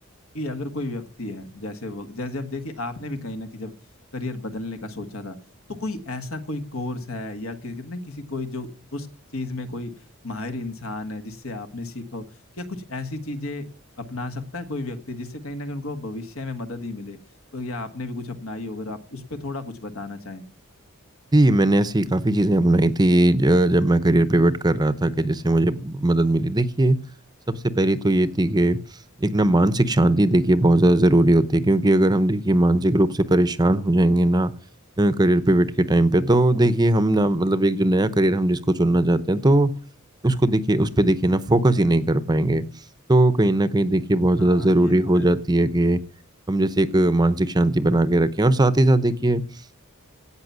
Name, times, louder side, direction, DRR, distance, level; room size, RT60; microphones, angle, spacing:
voice 1, 0.3-3.7 4.1-5.4 5.8-9.1 9.3-9.9 10.2-12.3 12.6-13.7 14.0-17.2 17.5-20.4 44.4-45.3, left 2 dB, 70° left, 8 dB, 1.7 m, -33 dB
voice 2, 21.3-27.0 27.5-28.8 29.2-34.5 35.0-39.7 40.2-42.7 43.1-46.0 46.5-49.4, right 1 dB, 20° right, 14 dB, 0.7 m, -19 dB
17.0 x 5.8 x 9.4 m, 0.44 s
head